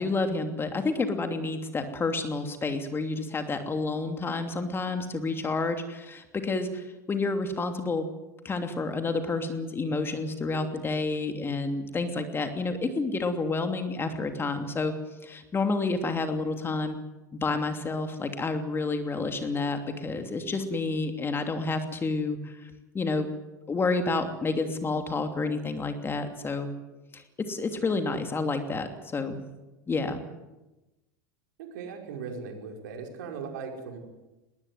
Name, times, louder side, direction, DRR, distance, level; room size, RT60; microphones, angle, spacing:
voice 1, 0.0-8.1 8.4-14.9 15.2-17.0 17.3-23.3 23.7-26.7 27.1-29.4 29.9-30.2, left 3 dB, 25° left, 7 dB, 2.9 m, -29 dB
voice 2, 31.6-34.0, right 5 dB, 70° right, 3 dB, 5.4 m, -38 dB
21.0 x 19.0 x 9.4 m, 1.0 s
hypercardioid pair, 90°, 10 cm